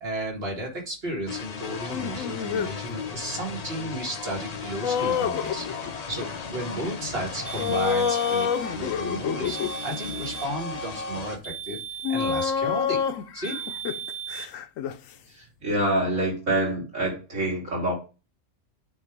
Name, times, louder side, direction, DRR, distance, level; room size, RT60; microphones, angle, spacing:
voice 1, 0.0-5.7 5.9-11.8 12.1-13.0 13.3-13.6, right 1 dB, 50° right, 0 dB, 2.0 m, -33 dB
sound 1, 1.3-11.4, left 4 dB, 40° left, 0.6 m, -36 dB
sound 2, 1.9-2.7 4.8-6.0 7.6-9.8 10.9-11.0 12.0-15.0, left 8 dB, 80° left, 1.0 m, -27 dB
sound 3, 7.5-8.6 9.4-10.6 11.4-12.6 13.4-14.5, right 7 dB, 20° right, 1.4 m, -37 dB
voice 2, 15.6-17.9, right 1 dB, 85° right, -1 dB, 3.4 m, -25 dB
8.6 x 2.9 x 4.6 m, 0.31 s
omnidirectional pair, 1.4 m